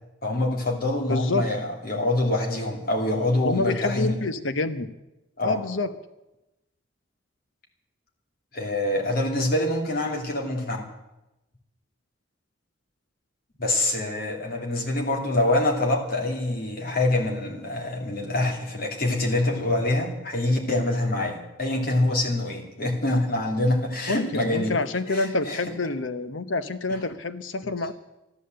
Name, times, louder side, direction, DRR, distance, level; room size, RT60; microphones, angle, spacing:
voice 1, 0.2-4.2 5.4-5.6 8.5-10.8 13.6-24.8 25.1-25.6, left 1 dB, 50° left, -1 dB, 2.8 m, -25 dB
voice 2, 1.1-1.4 3.4-4.9 5.4-5.9 24.1-27.9, left 3 dB, 75° left, 11 dB, 0.9 m, -27 dB
13.5 x 11.5 x 7.8 m, 0.97 s
head